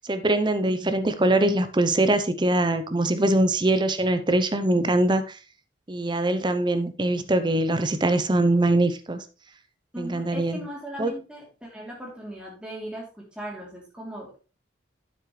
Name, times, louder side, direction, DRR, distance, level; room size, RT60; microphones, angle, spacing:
voice 1, 0.0-5.4 5.9-9.2 10.0-10.7 11.0-11.1, right 1 dB, 25° right, 0.7 m, -23 dB
voice 2, 3.0-3.3 9.9-14.4, equal, 5° right, 3.0 m, -38 dB
9.6 x 7.6 x 3.2 m
head